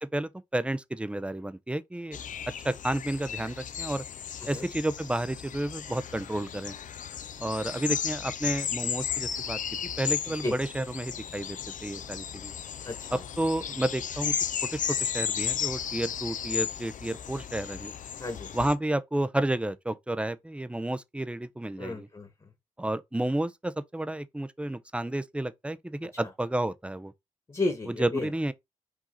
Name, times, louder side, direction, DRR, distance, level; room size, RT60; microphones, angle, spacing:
voice 1, 0.0-2.2 2.6-4.0 4.5-6.7 7.4-9.6 10.0-12.5 13.1-14.3 14.6-17.9 18.5-22.1 22.8-27.1 28.0-28.5, right 1 dB, 10° right, 0.5 m, -31 dB
sound 1, 2.1-18.7, left 8 dB, 65° left, 0.5 m, -34 dB
voice 2, 12.8-13.2 18.2-18.5 21.8-22.5 27.5-28.3, left 2 dB, 30° left, 1.6 m, -33 dB
4.9 x 2.7 x 3.9 m
cardioid pair, 60°, 14 cm